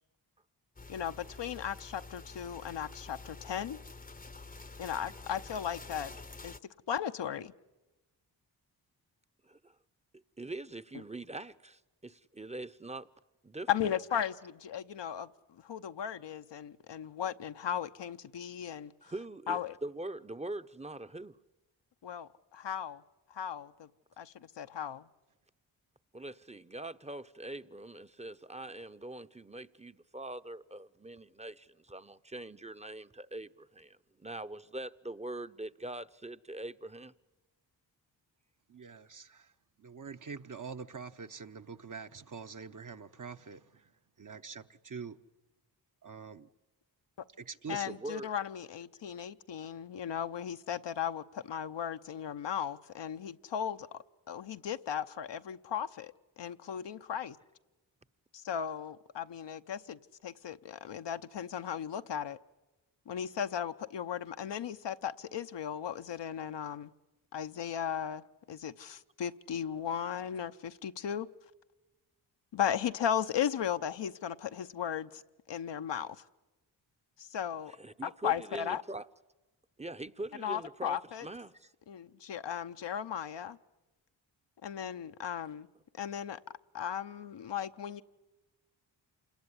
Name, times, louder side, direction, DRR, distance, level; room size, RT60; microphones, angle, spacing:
Rain Hitting Metal, 0.8-6.6, left 3 dB, 20° left, 0.8 m, -48 dB
voice 1, 0.9-3.8 4.8-6.1 6.4-6.5 6.9-7.5 13.7-18.9 19.5-19.7 22.0-23.0 23.3-23.9 24.2-25.1 47.7-57.4 58.3-62.4 63.1-66.9 67.3-71.3 72.5-75.2 75.5-76.2 77.2-77.7 78.0-78.8 80.4-81.3 81.9-83.6 84.6-85.7 86.0-86.4 86.7-88.0, left 9 dB, 65° left, 0.9 m, -36 dB
voice 2, 9.4-9.7 10.1-13.1 13.4-13.7 19.0-21.4 26.1-37.1 47.7-48.3 77.8-79.1 79.8-81.7, right 2 dB, 15° right, 0.8 m, -43 dB
voice 3, 38.7-39.5 39.8-43.9 44.2-45.2 46.0-46.5 47.4-48.0, right 5 dB, 40° right, 1.0 m, -45 dB
27.5 x 18.5 x 9.9 m
supercardioid pair, 40°, 46 cm